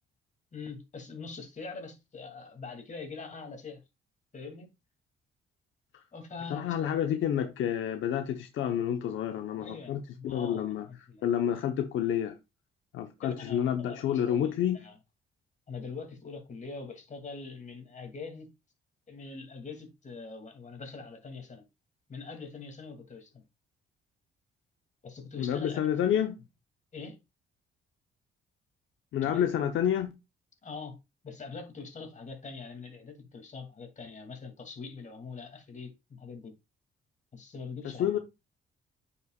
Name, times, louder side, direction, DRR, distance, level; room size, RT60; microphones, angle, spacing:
voice 1, 0.5-3.8 4.3-4.7 6.1-6.9 9.6-11.3 13.2-14.9 15.7-18.5 19.1-21.7 22.1-23.4 25.0-26.2 26.9-27.2 29.2-29.5 30.6-31.0 31.2-36.5 37.3-38.2, left 4 dB, 40° left, 2.6 m, -43 dB
voice 2, 6.5-10.9 11.2-12.4 12.9-14.8 25.4-26.3 29.1-30.1 37.8-38.2, left 9 dB, 75° left, 0.9 m, -29 dB
9.3 x 5.8 x 2.4 m
cardioid pair, 90°, 20 cm